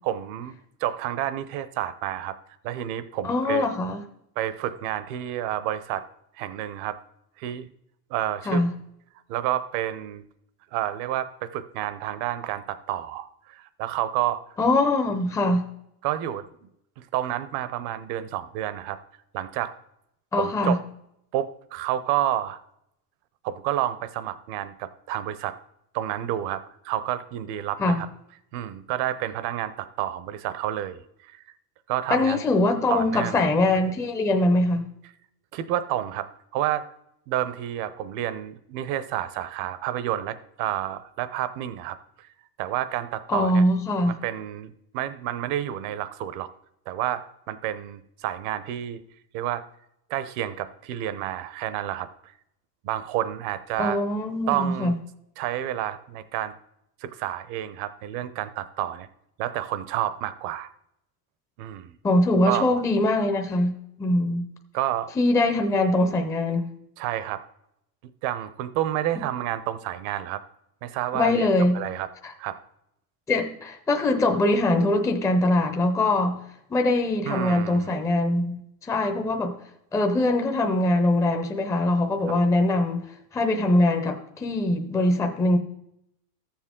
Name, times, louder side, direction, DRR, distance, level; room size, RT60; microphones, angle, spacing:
voice 1, 0.0-0.5 0.8-2.4 2.6-3.7 4.4-6.0 6.4-7.0 7.4-7.7 8.1-8.6 9.3-10.2 10.7-14.4 16.0-16.5 17.0-19.0 19.3-19.7 20.3-20.8 21.3-22.6 23.4-25.6 25.9-28.1 28.5-31.4 31.9-32.4 32.9-33.4 35.5-36.3 36.5-36.9 37.3-42.3 42.6-43.6 44.1-46.5 46.9-49.0 49.3-49.6 50.1-52.3 52.8-54.0 54.5-55.0 55.4-56.5 57.0-59.1 59.4-60.7 61.6-62.0 62.5-62.8 64.7-65.1 67.0-67.4 68.2-70.4 70.8-71.5 71.7-72.1 72.4-72.6 77.2-77.9 82.3-82.4, right 12 dB, 55° right, 0.8 m, -29 dB
voice 2, 3.2-4.0 8.5-8.7 14.6-15.7 20.3-20.8 27.8-28.0 32.1-34.8 43.3-44.1 53.8-54.9 62.0-64.5 65.2-66.7 71.1-71.8 72.2-72.3 73.3-76.4 76.7-79.6 79.9-83.0 83.3-85.6, left 2 dB, 5° left, 0.6 m, -22 dB
13.5 x 7.3 x 3.7 m
supercardioid pair, 135°, 49 cm